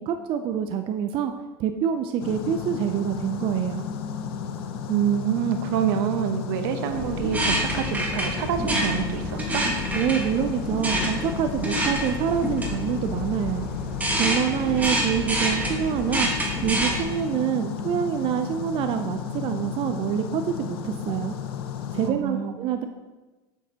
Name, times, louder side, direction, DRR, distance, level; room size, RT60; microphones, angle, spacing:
voice 1, 0.1-1.3 1.6-3.8 9.9-13.7 14.2-16.3 16.6-21.3 21.9-22.9, right 9 dB, 45° right, 7 dB, 0.5 m, -26 dB
sound 1, 2.2-22.1, left 7 dB, 75° left, 0.7 m, -33 dB
voice 2, 4.9-9.7 22.0-22.5, right 9 dB, 70° right, 7 dB, 0.8 m, -26 dB
sound 2, 6.9-17.0, right 1 dB, 10° right, 1.5 m, -28 dB
8.0 x 6.7 x 2.8 m, 1.2 s
hypercardioid pair, 100°, 13 cm